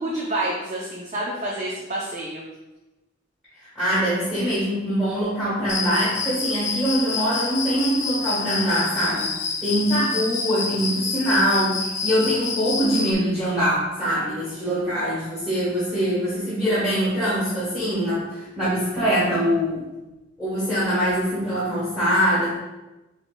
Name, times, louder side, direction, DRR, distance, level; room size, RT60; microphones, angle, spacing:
voice 1, 0.0-2.4 14.3-14.7, right 1 dB, 35° right, -4 dB, 0.5 m, -29 dB
voice 2, 3.5-9.3 9.6-19.8 20.4-22.6, equal, ahead, -10 dB, 1.3 m, -23 dB
Cricket, 5.7-13.1, left 4 dB, 40° left, 0.5 m, -28 dB
6.3 x 3.2 x 2.2 m, 1.1 s
head